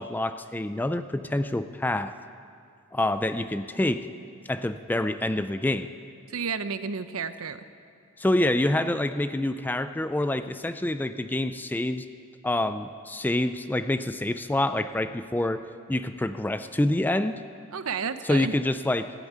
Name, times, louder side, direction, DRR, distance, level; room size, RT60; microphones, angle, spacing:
voice 1, 0.0-2.1 2.9-4.1 4.5-5.9 8.2-12.1 12.4-17.4 18.2-19.1, left 1 dB, 10° left, 11 dB, 0.3 m, -27 dB
voice 2, 6.3-7.6 17.7-18.5, right 5 dB, 75° right, 12 dB, 0.7 m, -31 dB
15.5 x 9.0 x 9.6 m, 2.4 s
head